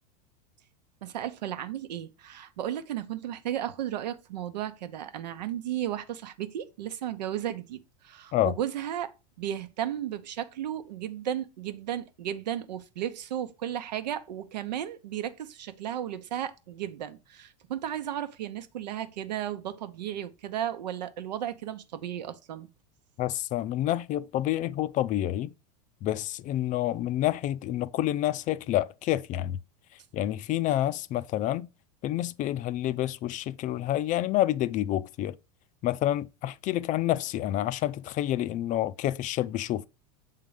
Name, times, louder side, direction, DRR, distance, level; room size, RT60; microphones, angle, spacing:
voice 1, 1.0-22.7, right 11 dB, 90° right, 0.9 m, -34 dB
voice 2, 23.2-25.5 26.0-29.6 30.1-31.7 32.0-35.4 35.8-39.9, left 13 dB, 40° left, 0.4 m, -28 dB
7.3 x 3.8 x 4.8 m
supercardioid pair, 115°, 21 cm